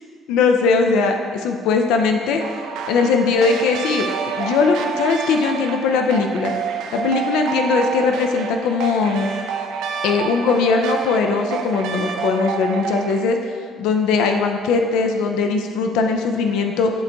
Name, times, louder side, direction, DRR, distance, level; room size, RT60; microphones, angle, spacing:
voice 1, 0.3-2.4 2.9-4.1 4.4-6.5 6.9-9.3 10.0-13.4 13.8-16.9, left 4 dB, 90° left, 4 dB, 0.5 m, -19 dB
sound 1, 2.4-13.2, right 6 dB, 80° right, 0.6 m, -28 dB
11.0 x 3.9 x 3.5 m, 2.1 s
cardioid pair, 165°, 0 cm